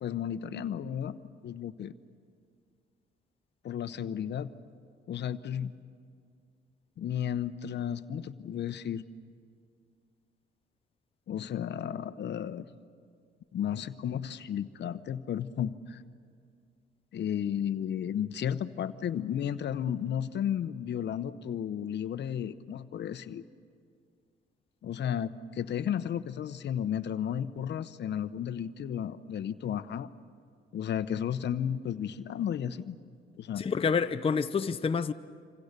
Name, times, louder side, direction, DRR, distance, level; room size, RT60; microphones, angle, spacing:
voice 1, 0.0-1.9 3.6-4.5 5.1-5.7 7.0-9.0 11.3-12.7 13.5-16.0 17.1-23.4 24.8-30.1 30.7-33.0 33.4-33.7, left 9 dB, 60° left, 0.9 m, -33 dB
voice 2, 33.6-35.1, left 5 dB, 30° left, 0.7 m, -28 dB
27.0 x 26.5 x 6.7 m
cardioid pair, 90°, 20 cm